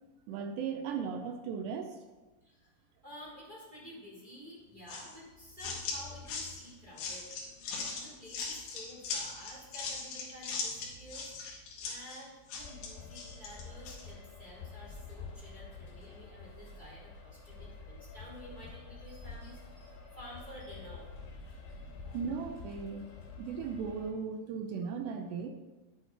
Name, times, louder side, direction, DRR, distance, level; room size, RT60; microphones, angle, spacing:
voice 1, 0.3-2.0 22.1-23.1 23.4-25.5, right 6 dB, 85° right, 4 dB, 2.4 m, -37 dB
voice 2, 3.0-7.3 7.7-11.3 11.8-21.1 21.7-21.9, equal, 10° right, -7 dB, 3.3 m, -51 dB
sound 1, 4.9-14.0, left 4 dB, 65° left, 3.7 m, -40 dB
sound 2, 12.6-24.1, left 4 dB, 80° left, 5.2 m, -48 dB
10.0 x 9.5 x 4.4 m, 1.2 s
omnidirectional pair, 5.7 m